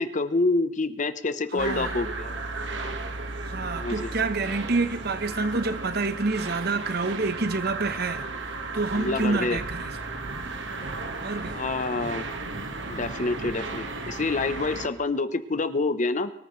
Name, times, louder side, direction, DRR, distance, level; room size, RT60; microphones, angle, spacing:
voice 1, 0.0-2.6 3.7-4.1 8.9-9.6 11.5-12.3 12.9-16.3, left 3 dB, 45° left, 0.9 m, -27 dB
voice 2, 1.5-1.9 3.4-9.9 11.2-11.6, right 3 dB, 60° right, 1.0 m, -28 dB
sound 1, 1.6-14.9, right 3 dB, 80° right, 1.6 m, -34 dB
24.0 x 14.0 x 3.2 m
head